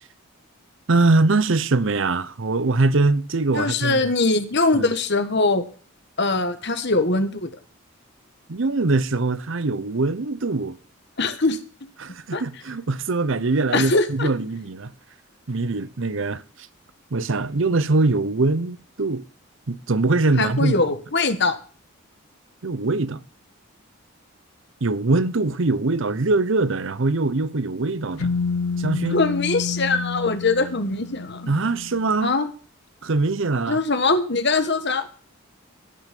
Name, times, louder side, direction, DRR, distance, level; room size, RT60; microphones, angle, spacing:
voice 1, 0.9-4.0 4.7-4.9 8.5-10.8 12.0-14.9 15.5-16.4 17.1-19.2 19.7-20.7 22.6-23.2 24.8-28.3 28.8-29.2 31.5-32.3 33.0-33.8, right 3 dB, 60° right, 0.8 m, -22 dB
voice 2, 3.5-5.6 6.2-7.5 11.2-11.9 12.3-12.4 13.7-14.3 20.4-21.6 29.1-31.5 32.2-32.5 33.7-35.1, left 3 dB, 55° left, 1.4 m, -22 dB
sound 1, 28.2-32.0, left 4 dB, 70° left, 0.5 m, -29 dB
17.5 x 6.3 x 5.2 m
head